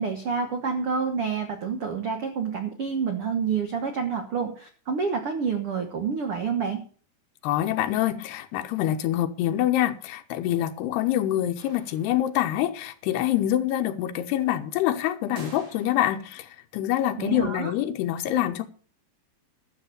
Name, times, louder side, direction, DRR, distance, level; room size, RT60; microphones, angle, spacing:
voice 1, 0.0-6.8 17.2-17.7, right 6 dB, 80° right, 1.2 m, -28 dB
voice 2, 7.4-18.7, left 12 dB, 90° left, 2.9 m, -26 dB
sound 1, 11.6-12.5 15.4-16.4, right 2 dB, 50° right, 4.4 m, -47 dB
12.5 x 7.1 x 6.6 m
omnidirectional pair, 4.6 m